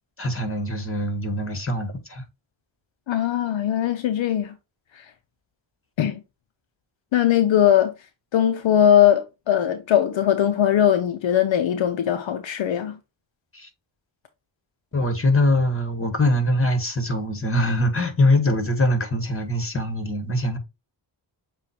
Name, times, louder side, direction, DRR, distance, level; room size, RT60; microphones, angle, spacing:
voice 1, 0.2-2.2 13.5-13.7 14.9-20.6, left 1 dB, 25° left, 1.7 m, -23 dB
voice 2, 3.1-4.5 4.9-5.1 6.0-6.2 7.1-7.9 8.3-13.0, left 10 dB, 65° left, 0.7 m, -20 dB
7.4 x 2.5 x 2.8 m
cardioid pair, 70°, 49 cm